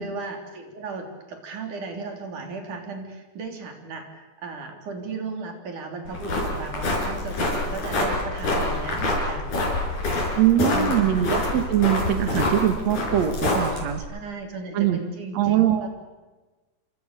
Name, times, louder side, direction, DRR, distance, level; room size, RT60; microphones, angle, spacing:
voice 1, 0.0-9.7 10.7-11.3 14.0-15.9, right 4 dB, 85° right, 3 dB, 5.0 m, -36 dB
sound 1, 6.1-14.0, left 2 dB, 80° left, 7.4 m, -26 dB
voice 2, 10.4-14.0 14.7-15.0 15.3-15.9, right 11 dB, 65° right, 8 dB, 2.5 m, -22 dB
28.0 x 25.5 x 6.8 m, 1.2 s
omnidirectional pair, 3.5 m